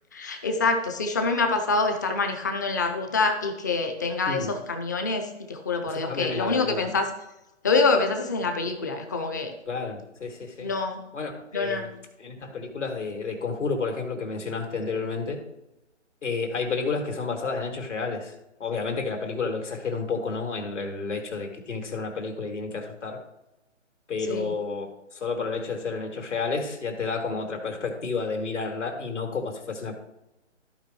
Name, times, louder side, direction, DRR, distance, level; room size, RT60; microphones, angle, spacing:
voice 1, 0.1-7.1 7.6-9.5 10.6-11.0 11.5-11.9 24.2-24.5, left 3 dB, 15° left, 6 dB, 0.5 m, -26 dB
voice 2, 5.9-7.0 9.7-10.7 11.1-11.9 12.2-15.4 16.2-18.3 18.6-23.2 24.1-29.9, left 4 dB, 75° left, 2 dB, 2.6 m, -31 dB
14.0 x 5.0 x 3.0 m, 0.93 s
figure-of-eight pair, 145°, 36 cm